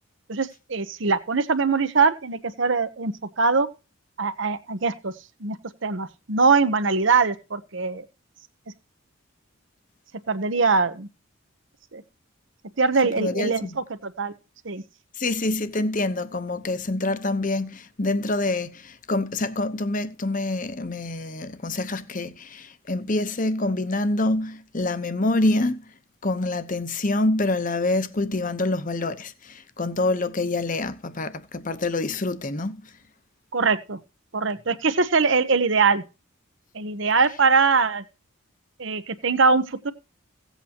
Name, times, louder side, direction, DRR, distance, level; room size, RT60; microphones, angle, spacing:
voice 1, 0.3-3.7 4.2-5.1 5.4-5.6 5.8-8.1 10.3-11.1 11.9-12.0 12.8-14.3 14.6-14.8 33.5-34.0 34.3-36.0 36.7-38.0 38.8-39.9, right 4 dB, 60° right, 1.0 m, -22 dB
voice 2, 13.2-13.8 15.2-25.8 26.2-32.9, left 2 dB, 40° left, 1.0 m, -26 dB
17.0 x 8.2 x 2.9 m
head